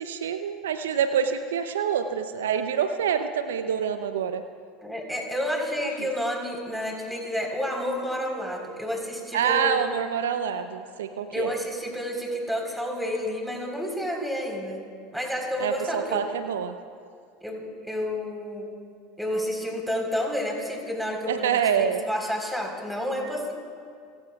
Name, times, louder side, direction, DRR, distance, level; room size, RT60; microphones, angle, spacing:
voice 1, 0.0-4.4 6.0-6.1 9.3-11.5 15.6-16.8 21.3-22.0, right 8 dB, 75° right, 9 dB, 0.7 m, -26 dB
voice 2, 4.8-9.8 11.3-14.8 15.1-16.2 17.4-18.7 19.2-23.5, equal, ahead, 0 dB, 4.2 m, -30 dB
30.0 x 17.0 x 2.4 m, 2.2 s
hypercardioid pair, 75°, 0 cm